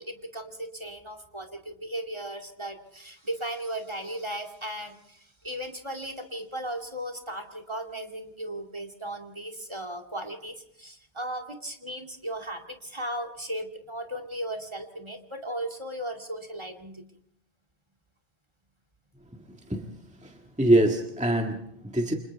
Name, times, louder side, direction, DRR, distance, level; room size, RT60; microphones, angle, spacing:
voice 1, 0.0-17.0, right 1 dB, 25° right, 6 dB, 2.4 m, -36 dB
voice 2, 20.2-22.1, right 1 dB, 5° right, 2 dB, 1.7 m, -24 dB
29.5 x 27.0 x 3.5 m, 0.71 s
omnidirectional pair, 1.1 m